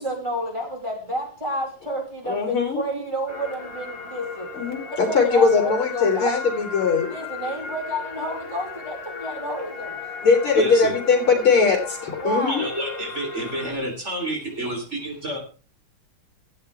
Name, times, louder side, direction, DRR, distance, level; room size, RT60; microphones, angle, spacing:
voice 1, 0.0-4.5 5.1-6.7 7.0-10.0 12.2-12.7, right 1 dB, 15° right, -1 dB, 5.1 m, -30 dB
voice 2, 2.3-2.8 4.5-7.1 10.2-12.6, left 5 dB, 75° left, 1 dB, 4.8 m, -20 dB
sound 1, 3.3-13.7, left 5 dB, 30° left, 1.9 m, -36 dB
voice 3, 10.6-10.9 12.5-15.4, right 1 dB, 30° right, 2 dB, 3.9 m, -29 dB
16.5 x 12.5 x 3.5 m, 0.36 s
omnidirectional pair, 2.4 m